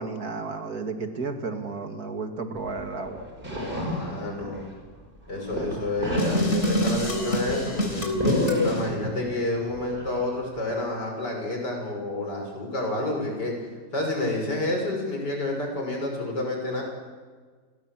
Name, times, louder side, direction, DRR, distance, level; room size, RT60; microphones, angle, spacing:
voice 1, 0.0-3.2, right 4 dB, 60° right, 6 dB, 2.7 m, -32 dB
sound 1, 2.6-4.9 5.2-9.3 9.7-10.7, equal, 30° right, 5.5 m, -31 dB
voice 2, 3.5-4.7 5.3-8.1 8.6-13.5 13.9-16.8, left 1 dB, 80° left, 1 dB, 6.9 m, -29 dB
sound 2, 6.2-8.8, left 1 dB, 40° left, 4.1 m, -26 dB
28.5 x 21.5 x 7.6 m, 1.5 s
omnidirectional pair, 1.8 m